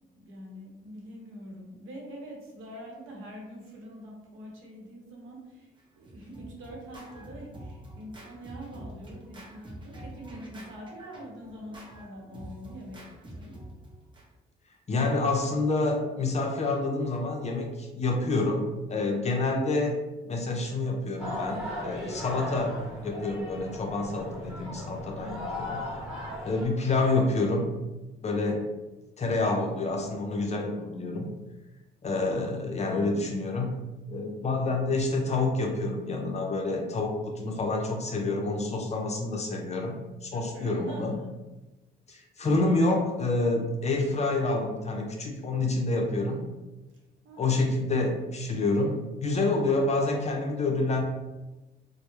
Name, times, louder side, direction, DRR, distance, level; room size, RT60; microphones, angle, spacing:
voice 1, 0.1-5.7 6.0-13.6 25.2-25.7 40.3-41.3 45.8-46.5 46.9-48.1, equal, 80° right, -1 dB, 0.8 m, -44 dB
Scratching (performance technique), 5.8-14.2, right 1 dB, 25° right, 0.6 m, -46 dB
voice 2, 14.9-20.0 20.3-22.7 23.0-25.8 26.4-27.7 28.2-28.7 29.2-31.3 32.0-33.7 34.1-41.1 42.1-46.4 47.4-51.0, left 2 dB, 35° left, 1 dB, 0.5 m, -28 dB
sound 1, 21.2-26.7, left 1 dB, ahead, 1.0 m, -37 dB
2.2 x 2.0 x 2.9 m, 1.1 s
cardioid pair, 90°, 20 cm